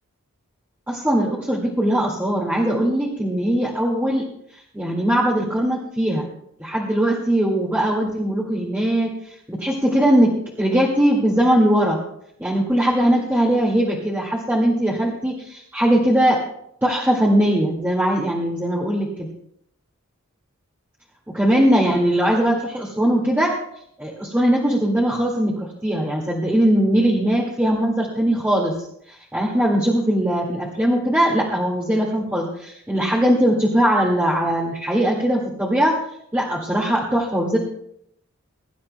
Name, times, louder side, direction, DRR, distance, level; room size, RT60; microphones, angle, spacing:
voice 1, 0.9-4.2 4.5-6.3 6.6-12.0 12.4-16.4 16.8-19.3 21.3-23.5 24.0-35.9 36.3-37.6, right 1 dB, 10° right, -5 dB, 1.9 m, -20 dB
23.5 x 12.0 x 2.2 m, 0.72 s
head